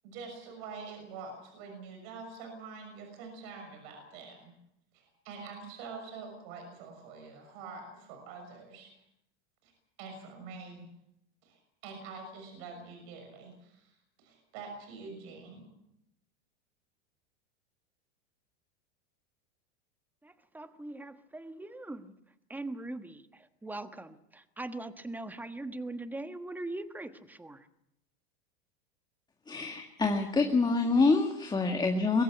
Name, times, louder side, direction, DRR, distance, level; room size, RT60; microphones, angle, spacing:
voice 1, 0.0-4.5 4.9-8.9 9.6-9.7 10.0-10.9 11.4-15.7, right 4 dB, 60° right, 4 dB, 6.3 m, -46 dB
voice 2, 20.2-22.1 22.5-27.7, right 2 dB, 5° right, 10 dB, 1.3 m, -41 dB
voice 3, 29.5-32.2, left 3 dB, 15° left, 4 dB, 1.9 m, -26 dB
22.5 x 14.5 x 9.9 m, 0.79 s
supercardioid pair, 115°, 33 cm